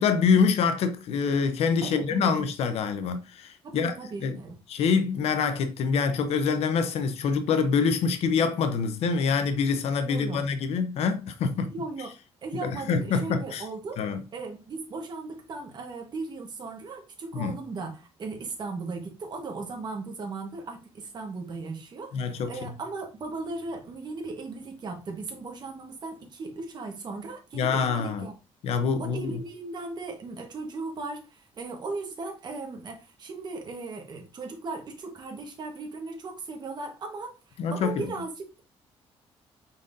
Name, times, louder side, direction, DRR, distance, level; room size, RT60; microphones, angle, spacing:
voice 1, 0.0-3.9 4.2-4.4 4.7-11.7 12.6-13.6 14.0-14.2 17.3-17.5 22.1-22.5 27.5-28.3 28.6-29.4 37.6-38.1, left 5 dB, 70° left, 0.7 m, -25 dB
voice 2, 1.8-2.3 3.6-4.6 10.0-10.4 11.7-12.1 12.4-14.0 14.3-28.3 29.0-38.6, right 3 dB, 40° right, 1.1 m, -37 dB
5.2 x 4.0 x 2.5 m
cardioid pair, 135°, 11 cm